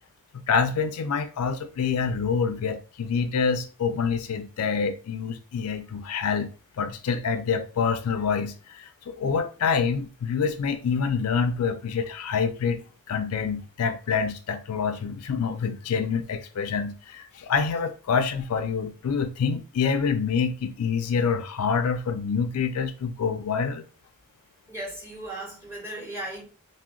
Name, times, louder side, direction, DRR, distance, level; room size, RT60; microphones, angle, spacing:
voice 1, 0.3-6.5 6.8-12.8 13.1-23.8, left 6 dB, 85° left, 0.4 m, -26 dB
voice 2, 24.7-26.4, right 1 dB, 10° right, 1.5 m, -36 dB
2.7 x 2.0 x 3.6 m
head